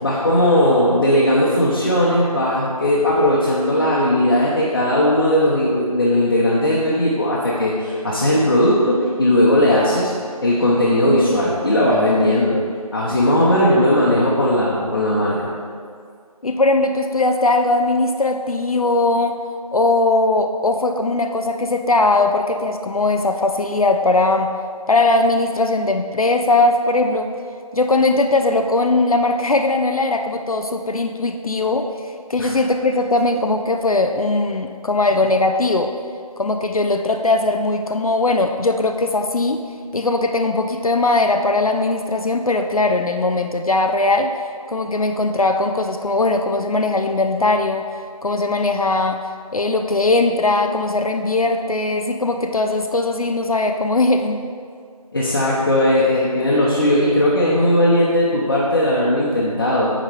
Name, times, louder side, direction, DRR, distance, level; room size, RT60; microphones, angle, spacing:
voice 1, 0.0-10.1 10.4-12.6 12.9-15.5 32.4-32.5 55.1-59.9, left 1 dB, 40° left, -6 dB, 1.0 m, -17 dB
voice 2, 16.4-19.4 19.7-24.5 24.9-27.3 27.7-35.9 36.4-39.6 39.9-44.3 44.7-47.8 48.2-49.3 49.5-54.4, left 2 dB, 65° left, 5 dB, 0.5 m, -19 dB
9.1 x 4.2 x 4.8 m, 2.1 s
figure-of-eight pair, 165°, 19 cm